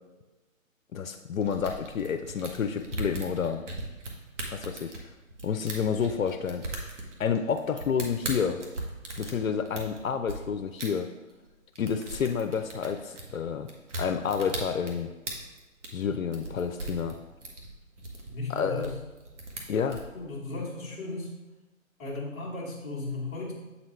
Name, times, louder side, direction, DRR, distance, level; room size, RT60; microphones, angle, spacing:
voice 1, 0.9-3.6 4.5-4.9 5.4-6.7 7.2-8.6 9.2-11.1 11.8-13.7 14.0-15.1 15.9-17.2 18.5-18.9 19.7-20.0, left 6 dB, 75° left, 7 dB, 0.6 m, -29 dB
sound 1, 1.4-10.4 10.8-10.9 11.3-11.5 11.8-20.1, right 2 dB, 60° right, 1.4 m, -38 dB
voice 2, 18.3-18.9 20.1-21.3 22.0-23.5, left 2 dB, 15° left, -8 dB, 1.3 m, -35 dB
7.9 x 4.1 x 3.1 m, 1.1 s
figure-of-eight pair, 145°, 41 cm